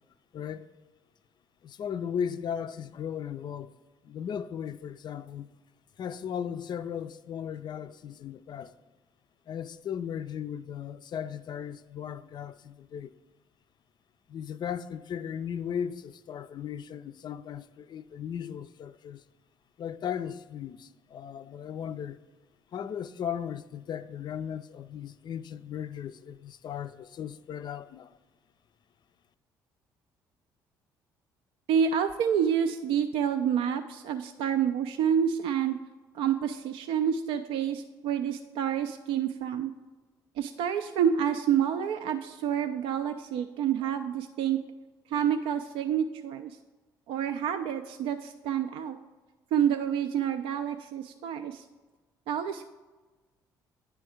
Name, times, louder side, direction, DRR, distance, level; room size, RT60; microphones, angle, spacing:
voice 1, 0.3-0.7 1.6-3.7 4.0-5.5 6.0-8.7 9.5-13.1 14.3-19.2 19.8-22.2 22.7-28.1, left 8 dB, 45° left, 0.4 m, -36 dB
voice 2, 31.7-35.8 36.1-39.7 40.4-44.6 45.1-46.6 47.1-49.0 49.5-51.6 52.3-52.7, right 8 dB, 60° right, 0.4 m, -28 dB
10.0 x 3.4 x 4.9 m
hypercardioid pair, 50°, 11 cm